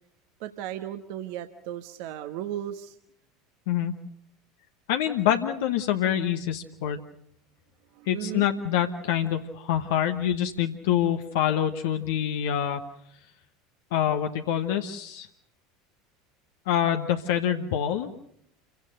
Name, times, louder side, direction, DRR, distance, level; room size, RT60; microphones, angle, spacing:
voice 1, 0.4-3.0 7.9-8.5, right 11 dB, 60° right, 8 dB, 1.2 m, -36 dB
voice 2, 4.9-7.0 8.1-12.8 13.9-15.3 16.7-18.1, left 10 dB, 65° left, 5 dB, 1.1 m, -26 dB
28.0 x 16.5 x 6.6 m, 0.70 s
figure-of-eight pair, 75°, 0 cm